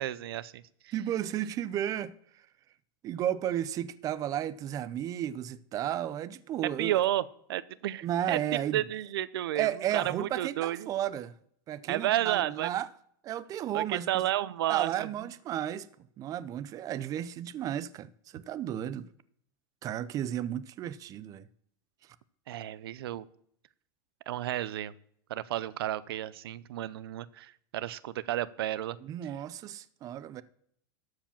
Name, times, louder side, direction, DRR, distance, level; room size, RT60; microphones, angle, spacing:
voice 1, 0.0-0.9 6.8-7.2 7.5-8.4 8.7-10.9 11.9-12.7 13.7-15.1 22.5-23.3 24.3-24.9 25.3-29.0, right 13 dB, 90° right, 0.6 m, -32 dB
voice 2, 0.9-2.4 3.0-6.9 8.0-8.8 9.5-11.3 11.7-12.9 13.2-14.2 14.7-15.9 16.2-19.1 19.8-21.5 29.0-30.4, right 11 dB, 30° right, 0.5 m, -33 dB
13.0 x 4.9 x 7.1 m
supercardioid pair, 145°, 12 cm